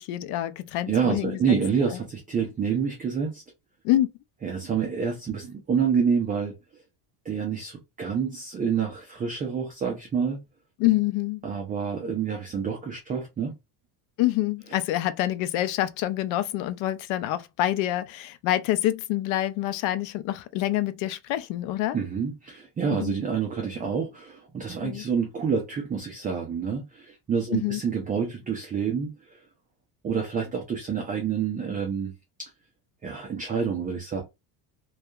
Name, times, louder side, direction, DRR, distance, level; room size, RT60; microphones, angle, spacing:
voice 1, 0.0-1.4 3.8-4.1 10.8-11.4 14.2-22.0 23.0-23.2 24.8-25.0 27.5-27.8, left 14 dB, 70° left, 0.5 m, -26 dB
voice 2, 0.9-3.4 4.4-6.5 7.3-10.4 11.4-13.5 21.9-29.4 30.0-32.1 32.4-32.5 33.0-34.2, right 6 dB, 20° right, 0.3 m, -28 dB
2.7 x 2.3 x 2.3 m
cardioid pair, 135°, 47 cm